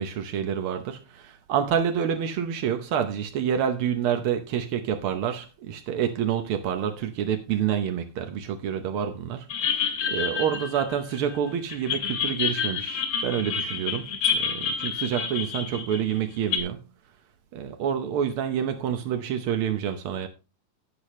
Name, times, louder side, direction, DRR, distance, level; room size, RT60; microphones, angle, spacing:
voice 1, 0.0-16.8 17.5-20.3, right 8 dB, 80° right, 1.2 m, -28 dB
sound 1, 9.5-11.3 11.7-16.6, left 6 dB, 55° left, 2.7 m, -28 dB
12.5 x 8.4 x 3.1 m
omnidirectional pair, 3.6 m